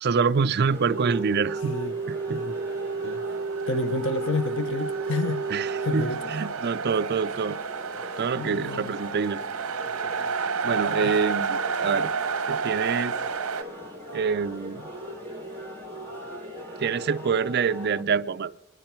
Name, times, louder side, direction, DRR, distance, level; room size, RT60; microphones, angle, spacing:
voice 1, 0.0-1.7 2.1-2.4 5.5-7.6 8.2-9.4 10.6-12.1 12.5-13.2 14.1-14.8 16.8-18.5, right 5 dB, 45° right, 0.5 m, -26 dB
sound 1, 0.7-18.0, equal, 10° left, 1.6 m, -41 dB
sound 2, 0.9-6.0, right 4 dB, 25° left, 2.3 m, -31 dB
voice 2, 1.6-1.9 2.3-2.6 3.0-3.2 3.7-5.5 5.8-6.3 8.3-8.9 10.9-11.2, left 3 dB, 55° left, 0.6 m, -30 dB
sound 3, 2.1-13.6, right 5 dB, 70° right, 1.0 m, -31 dB
28.0 x 11.0 x 4.5 m
head